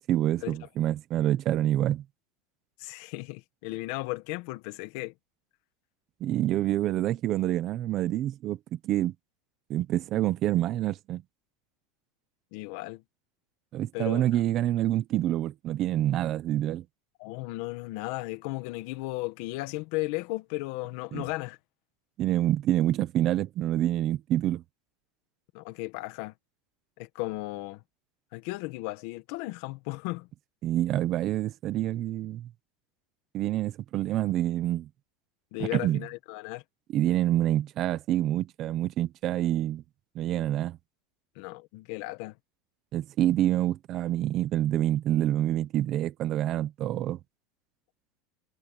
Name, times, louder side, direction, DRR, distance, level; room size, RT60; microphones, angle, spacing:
voice 1, 0.1-2.0 6.2-9.1 9.7-11.2 13.7-16.8 21.1-21.3 22.2-24.6 30.6-32.5 33.3-34.9 35.7-36.0 36.9-39.8 40.1-40.8 42.9-47.2, right 13 dB, 30° right, 0.9 m, -27 dB
voice 2, 2.8-5.1 12.5-13.0 13.9-14.2 17.2-21.6 25.5-26.3 27.0-27.8 28.3-30.3 35.5-36.6 41.3-42.3, left 21 dB, 50° left, 1.7 m, -35 dB
supercardioid pair, 175°, 0 cm